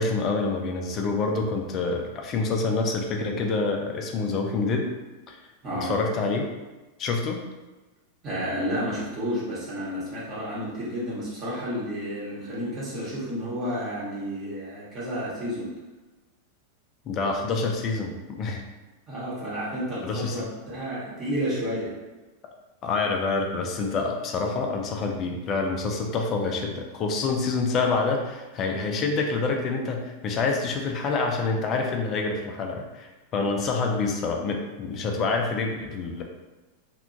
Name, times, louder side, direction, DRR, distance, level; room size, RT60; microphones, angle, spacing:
voice 1, 0.0-4.9 5.3-5.4 5.8-6.5 7.0-7.4 17.1-18.6 20.0-20.4 22.8-36.2, left 3 dB, 30° left, 2 dB, 0.4 m, -27 dB
voice 2, 5.6-5.9 8.2-15.7 19.1-21.9, equal, 30° right, -8 dB, 0.9 m, -31 dB
2.7 x 2.2 x 2.6 m, 1.1 s
figure-of-eight pair, 90°, 0 cm